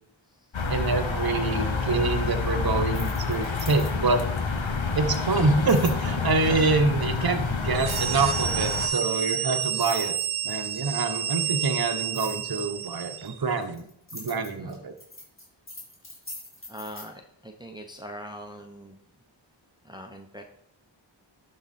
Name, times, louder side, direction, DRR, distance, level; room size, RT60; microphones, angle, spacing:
sound 1, 0.5-8.9, left 4 dB, 70° left, 1.0 m, -28 dB
voice 1, 0.7-4.2 4.9-10.1 10.4-13.8 14.1-14.9, right 3 dB, 50° right, 6 dB, 1.0 m, -26 dB
sound 2, 2.9-4.2 5.7-6.0 7.8-8.3 9.2-9.3 9.6-10.7 12.1-12.4 13.2-17.1, left 1 dB, 25° left, 3.4 m, -42 dB
sound 3, 7.7-13.4, right 9 dB, 85° right, 0.6 m, -30 dB
voice 2, 16.7-19.0 19.8-20.4, equal, 10° right, 3 dB, 0.8 m, -41 dB
11.5 x 3.9 x 4.2 m, 0.71 s
wide cardioid pair, 45°, 47 cm